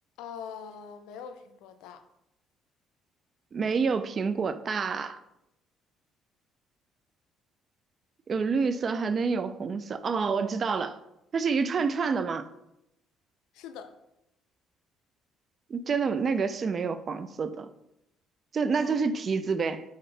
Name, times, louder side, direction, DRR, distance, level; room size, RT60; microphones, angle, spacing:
voice 1, 0.2-2.0 13.5-13.9 18.8-19.0, left 7 dB, 85° left, 0.4 m, -43 dB
voice 2, 3.5-5.2 8.3-11.0 11.3-12.5 15.7-17.7 18.5-19.8, right 5 dB, 40° right, 0.3 m, -28 dB
4.3 x 3.7 x 3.2 m
cardioid pair, 95°, 0 cm